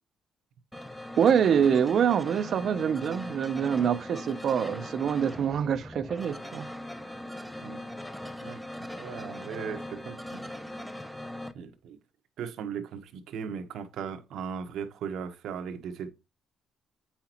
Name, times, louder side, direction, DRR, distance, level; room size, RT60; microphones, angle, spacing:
sound 1, 0.7-11.5, left 1 dB, ahead, 0.8 m, -40 dB
voice 1, 1.2-6.7, right 8 dB, 60° right, 0.7 m, -25 dB
voice 2, 9.0-10.2 11.5-12.0 12.4-16.1, right 7 dB, 80° right, 1.1 m, -37 dB
8.0 x 5.8 x 3.0 m
cardioid pair, 90°, 0 cm